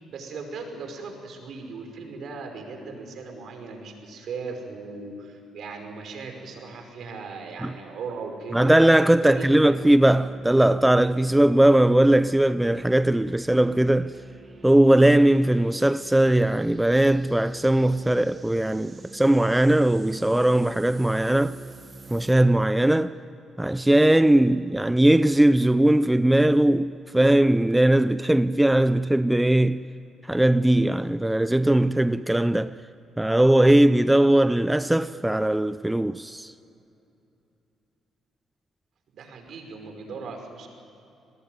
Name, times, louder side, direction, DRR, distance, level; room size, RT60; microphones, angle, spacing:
voice 1, 0.1-8.7 9.2-9.8 39.1-40.7, right 4 dB, 65° right, 5.4 m, -38 dB
voice 2, 8.5-14.1 14.6-21.6 22.1-23.1 23.6-29.8 30.2-32.8 33.2-36.5, right 1 dB, 10° right, 0.6 m, -19 dB
sound 1, 9.6-22.3, right 3 dB, 30° right, 2.5 m, -46 dB
26.5 x 20.0 x 9.5 m
cardioid pair, 90°, 0 cm